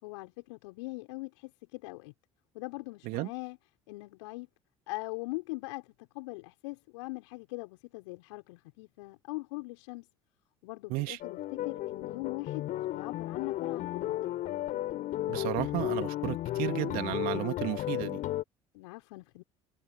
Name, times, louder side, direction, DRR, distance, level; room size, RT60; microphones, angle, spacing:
voice 1, 0.0-2.1 2.5-3.6 3.9-4.5 4.9-10.1 10.6-14.2 18.7-19.4, left 25 dB, 70° left, 6.3 m, -41 dB
sound 1, 11.2-18.4, left 14 dB, 55° left, 4.5 m, -34 dB
voice 2, 15.3-18.2, right 21 dB, 65° right, 3.0 m, -33 dB
hypercardioid pair, 60°, 16 cm